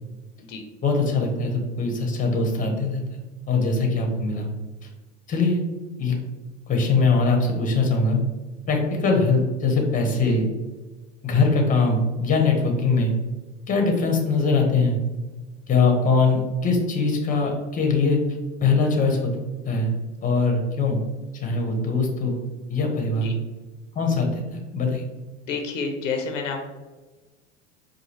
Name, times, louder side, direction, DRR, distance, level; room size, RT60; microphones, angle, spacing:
voice 1, 0.8-3.0 3.5-4.5 5.3-5.6 5.9-6.1 6.7-8.2 8.7-10.4 11.2-13.1 13.7-15.0 15.7-18.2 18.6-19.3 19.6-19.9 20.2-21.0 21.3-22.4 22.7-23.3 23.9-25.0, left 3 dB, 20° left, 2 dB, 0.9 m, -22 dB
voice 2, 25.5-26.7, left 4 dB, 90° left, 5 dB, 0.7 m, -29 dB
4.7 x 2.4 x 3.0 m, 1.2 s
hypercardioid pair, 95°, 37 cm